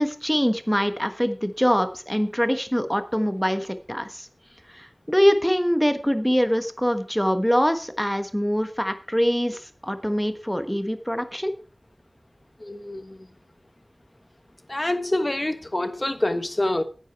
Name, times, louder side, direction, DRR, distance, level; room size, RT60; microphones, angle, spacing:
voice 1, 0.0-4.3 4.7-11.5, equal, 5° left, 1.2 m, -24 dB
voice 2, 12.6-13.2 14.7-16.8, left 1 dB, 35° left, 1.3 m, -26 dB
10.5 x 9.1 x 4.6 m
wide cardioid pair, 45°, 0 cm